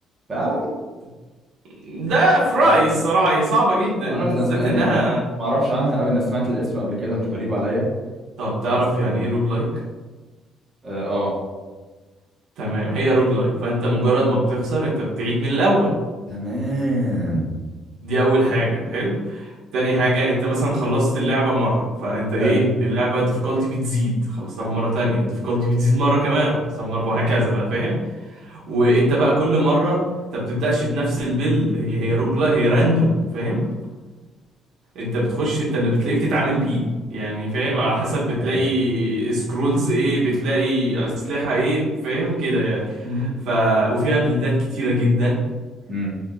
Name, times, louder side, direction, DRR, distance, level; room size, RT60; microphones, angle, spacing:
voice 1, 0.3-0.7 4.0-5.0 5.4-7.9 9.0-9.3 10.8-11.3 16.3-17.5 22.4-22.6 24.6-24.7 38.4-38.6 43.0-43.3 45.9-46.1, equal, 25° right, -6 dB, 1.1 m, -24 dB
voice 2, 1.8-5.2 8.4-9.7 12.6-15.9 18.0-28.0 28.3-30.0 30.3-33.6 34.9-45.4, right 1 dB, 70° right, -5 dB, 1.1 m, -21 dB
3.6 x 3.5 x 2.3 m, 1.3 s
cardioid pair, 145°, 0 cm